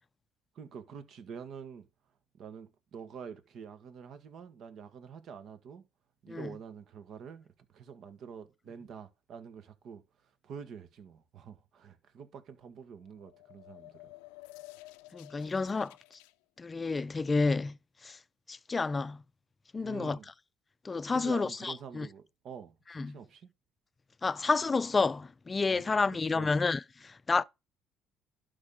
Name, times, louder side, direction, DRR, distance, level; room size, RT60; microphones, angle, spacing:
voice 1, 0.5-1.9 2.3-5.8 6.2-14.1 19.8-20.3 21.1-23.5 25.7-26.5, right 6 dB, 60° right, 1.7 m, -47 dB
sound 1, 13.0-16.3, left 20 dB, 90° left, 0.5 m, -52 dB
voice 2, 15.1-15.9 16.6-17.7 18.0-18.2 18.5-19.2 19.7-20.2 20.8-22.1 23.0-23.1 24.2-27.4, left 4 dB, 30° left, 0.5 m, -30 dB
11.5 x 5.5 x 3.8 m
supercardioid pair, 70°, 0 cm